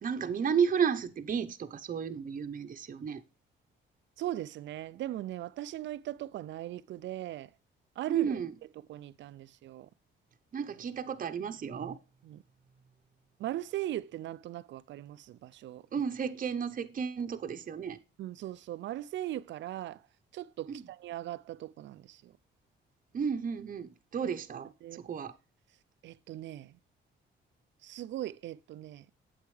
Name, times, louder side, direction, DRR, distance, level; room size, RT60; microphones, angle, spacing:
voice 1, 0.0-3.2 8.1-8.5 10.5-12.0 15.9-18.0 20.7-20.9 23.1-24.7 25.0-25.3, right 7 dB, 45° right, 0.8 m, -32 dB
voice 2, 4.2-7.5 8.0-8.4 8.9-9.9 12.2-12.4 13.4-15.8 18.2-20.0 20.3-22.3 24.8-25.0 26.0-26.8 27.8-29.1, right 13 dB, 70° right, 0.5 m, -39 dB
8.3 x 8.0 x 3.2 m
cardioid pair, 90°, 20 cm